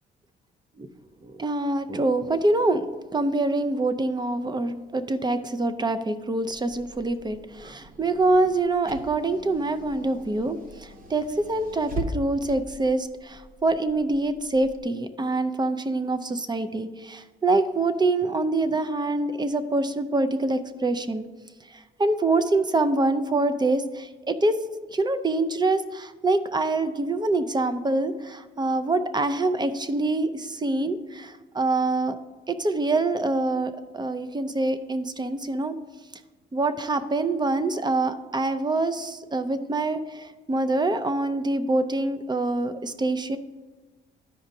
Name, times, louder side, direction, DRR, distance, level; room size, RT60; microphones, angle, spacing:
voice 1, 1.2-2.9 3.1-21.3 22.0-24.5 24.9-32.2 32.5-35.8 36.5-43.4, right 2 dB, 20° right, 11 dB, 0.6 m, -25 dB
Car / Engine, 6.5-14.8, left 1 dB, 45° right, 0.9 m, -41 dB
13.0 x 5.0 x 2.7 m, 1.3 s
cardioid pair, 90°, 20 cm